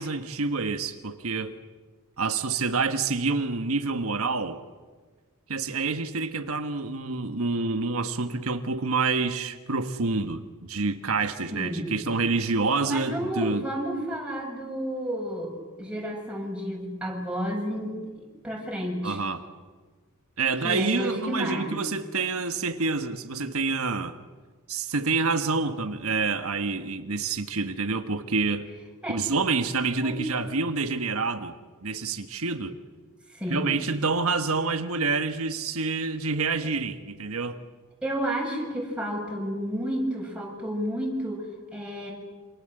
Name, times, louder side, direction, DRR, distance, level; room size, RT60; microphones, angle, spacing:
voice 1, 0.0-1.5 2.2-4.6 5.5-13.7 19.0-19.4 20.4-24.2 24.7-28.7 29.1-31.5 31.8-32.8 33.5-37.6, right 4 dB, 75° right, 7 dB, 1.4 m, -27 dB
voice 2, 11.5-12.0 12.9-15.5 15.8-19.2 20.6-21.8 29.0-29.2 30.0-30.2 33.3-33.8 38.0-41.4 41.7-42.1, equal, 5° right, -1 dB, 7.2 m, -31 dB
27.5 x 27.5 x 7.8 m, 1.4 s
head